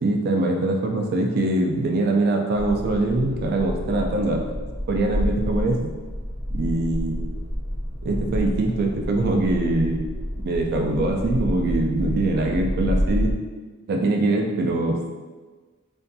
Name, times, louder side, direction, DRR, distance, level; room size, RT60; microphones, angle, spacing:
voice 1, 0.0-4.5 4.9-5.9 6.5-7.3 8.0-10.0 10.4-13.3 13.9-15.2, right 2 dB, 45° right, 2 dB, 0.3 m, -23 dB
sound 1, 2.6-13.3, equal, 25° left, 0.4 m, -29 dB
2.6 x 2.2 x 2.6 m, 1.4 s
head